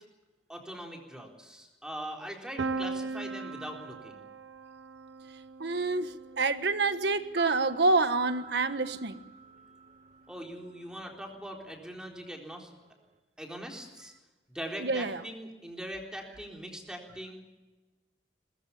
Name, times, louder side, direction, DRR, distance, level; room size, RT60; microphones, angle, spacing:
voice 1, 0.5-4.2 10.3-12.7 13.4-14.1 14.5-17.4, equal, 5° right, 1 dB, 4.1 m, -41 dB
Piano, 2.6-8.4, right 3 dB, 80° right, 0.8 m, -39 dB
voice 2, 5.6-9.2 14.8-15.2, right 3 dB, 65° right, 11 dB, 1.4 m, -27 dB
sound 1, 7.2-11.4 11.6-11.8, right 6 dB, 45° right, 1.6 m, -46 dB
22.0 x 21.0 x 7.2 m, 1.2 s
head